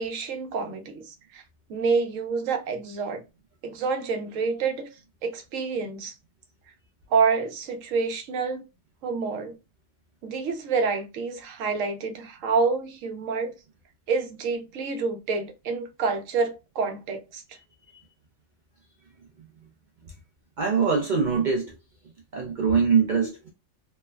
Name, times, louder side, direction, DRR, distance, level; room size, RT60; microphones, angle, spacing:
voice 1, 0.0-1.4 1.7-3.2 3.6-4.9 5.2-6.1 7.1-8.6 9.0-9.5 10.2-13.6 14.1-17.4, right 5 dB, 85° right, 1.0 m, -27 dB
voice 2, 20.6-21.7 22.3-23.4, right 5 dB, 60° right, 0.5 m, -22 dB
3.1 x 2.0 x 2.2 m
omnidirectional pair, 1.3 m